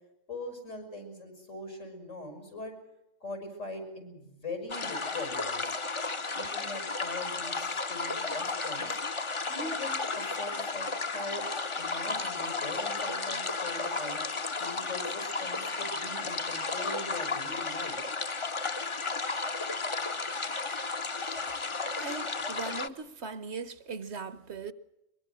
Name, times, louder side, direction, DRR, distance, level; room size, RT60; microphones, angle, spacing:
voice 1, 0.3-2.8 3.2-5.8 6.3-9.0 9.5-11.4 11.8-14.2 14.6-18.0, left 2 dB, 85° left, 6.5 m, -41 dB
sound 1, 4.7-22.9, left 3 dB, 30° left, 0.8 m, -33 dB
voice 2, 22.0-24.7, right 4 dB, 60° right, 1.4 m, -39 dB
23.0 x 22.0 x 6.3 m
omnidirectional pair, 1.3 m